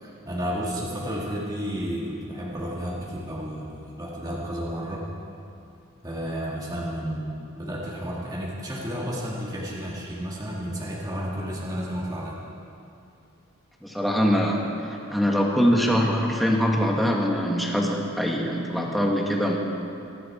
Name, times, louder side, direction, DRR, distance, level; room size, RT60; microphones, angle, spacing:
voice 1, 0.0-5.1 6.0-12.4, equal, 20° right, -5 dB, 2.0 m, -32 dB
voice 2, 13.8-19.6, equal, ahead, -1 dB, 1.7 m, -23 dB
25.0 x 11.0 x 4.4 m, 2.7 s
head